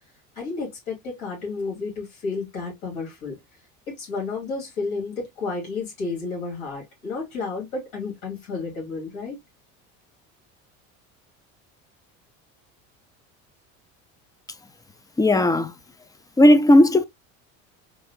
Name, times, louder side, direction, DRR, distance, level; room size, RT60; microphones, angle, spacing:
voice 1, 0.3-3.4 3.9-9.4, left 4 dB, 75° left, 2.8 m, -31 dB
voice 2, 15.2-15.7 16.4-17.0, left 1 dB, 10° left, 0.3 m, -15 dB
4.6 x 2.5 x 2.9 m
hypercardioid pair, 80°, 40 cm